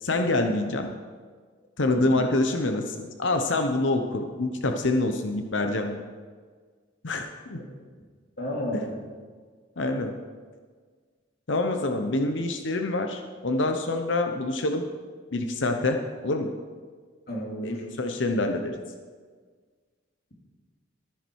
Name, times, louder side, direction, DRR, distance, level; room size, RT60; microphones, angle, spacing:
voice 1, 0.0-0.9 1.8-6.0 7.0-7.6 8.7-8.8 9.8-10.1 11.5-14.8 15.3-16.5 17.6-18.7, left 2 dB, 75° left, 5 dB, 0.9 m, -26 dB
voice 2, 1.9-2.2 7.5-7.6 8.4-9.0 17.3-17.8, equal, 55° left, -2 dB, 2.8 m, -33 dB
13.5 x 10.5 x 4.7 m, 1.5 s
head